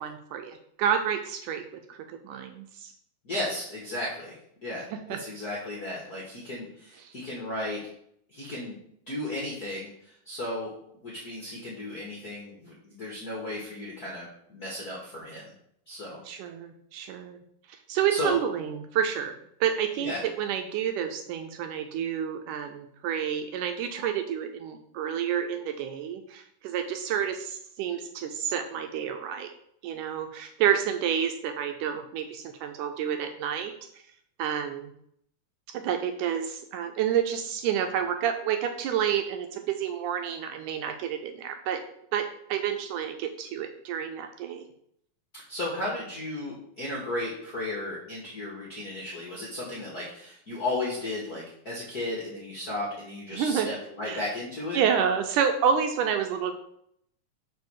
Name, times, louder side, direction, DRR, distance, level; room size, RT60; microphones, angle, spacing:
voice 1, 0.0-2.0 2.2-2.9 4.9-5.2 7.0-7.1 16.3-17.4 17.7-19.3 19.6-29.5 29.8-33.7 34.4-34.9 35.7-41.8 42.1-44.6 53.3-53.7 54.1-54.2 54.7-56.6, right 8 dB, 80° right, 6 dB, 2.0 m, -29 dB
voice 2, 3.2-4.3 4.6-4.9 5.2-7.8 8.3-8.8 9.1-10.7 11.0-15.4 15.9-16.2 18.1-18.4 20.0-20.2 45.5-54.8, left 1 dB, 55° left, -4 dB, 1.0 m, -34 dB
5.3 x 4.5 x 6.2 m, 0.70 s
omnidirectional pair, 3.9 m